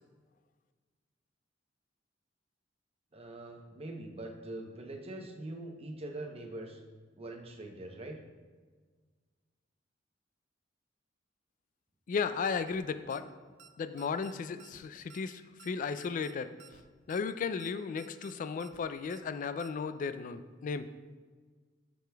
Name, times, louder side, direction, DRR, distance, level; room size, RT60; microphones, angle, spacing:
voice 1, 3.1-6.8 7.2-8.2, right 1 dB, 30° right, 2 dB, 0.7 m, -43 dB
voice 2, 12.1-13.2 13.8-16.5 17.1-20.9, left 5 dB, 45° left, 12 dB, 0.3 m, -35 dB
sound 1, 12.7-12.8 13.1-13.2 13.6-13.7 14.0-14.3 14.6-14.8 15.1-15.2 15.6-15.7 16.0-16.3 16.6-16.8 17.1-17.2 17.6-17.7 18.0-18.3 18.6-18.8 19.1-19.2 19.6-19.7, right 7 dB, 65° right, 0.4 m, -55 dB
10.5 x 5.0 x 2.3 m, 1.5 s
head